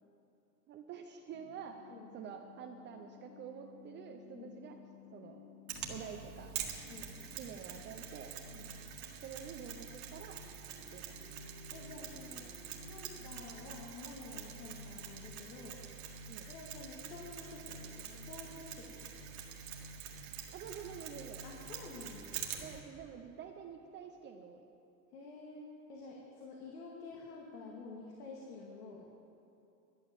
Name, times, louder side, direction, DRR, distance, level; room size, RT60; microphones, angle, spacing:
voice 1, 0.7-4.8 5.1-5.4 5.9-6.5 7.4-8.3 9.2-10.4 10.9-11.1 16.3-16.5 20.5-21.4 22.6-24.6, right 7 dB, 25° right, 4 dB, 0.5 m, -48 dB
sound 1, 1.3-13.9, left 7 dB, 65° left, 2.2 m, -58 dB
Mechanisms, 5.7-22.8, right 7 dB, 45° right, 1.8 m, -46 dB
voice 2, 11.7-12.5 12.8-15.8 16.5-19.1 21.4-22.4 25.1-29.1, left 3 dB, 80° left, -2 dB, 2.2 m, -50 dB
11.5 x 10.5 x 7.3 m, 2.8 s
supercardioid pair, 135°, 46 cm